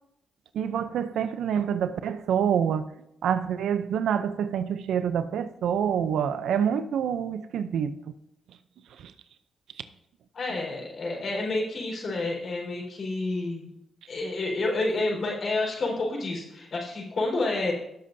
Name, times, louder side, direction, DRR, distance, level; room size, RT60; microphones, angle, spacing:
voice 1, 0.5-2.9 3.2-7.9, right 8 dB, 80° right, 0.6 m, -26 dB
voice 2, 10.3-13.7 14.1-17.7, left 2 dB, 55° left, 4.8 m, -29 dB
17.5 x 7.8 x 2.8 m
cardioid pair, 65°, 0 cm